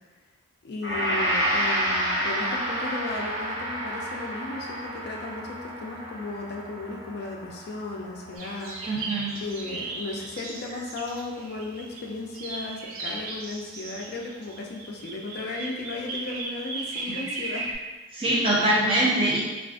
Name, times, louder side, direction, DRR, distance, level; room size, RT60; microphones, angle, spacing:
voice 1, 0.6-8.9 9.4-17.7, left 2 dB, 50° left, 0 dB, 0.3 m, -35 dB
Gong, 0.8-9.2 9.6-9.8, equal, 5° right, 1.3 m, -30 dB
sound 1, 8.3-12.0 12.3-17.7, right 2 dB, 75° right, 0.5 m, -36 dB
voice 2, 8.8-9.3 18.1-19.4, right 1 dB, 25° right, -7 dB, 0.7 m, -23 dB
2.4 x 2.4 x 3.4 m, 1.2 s
head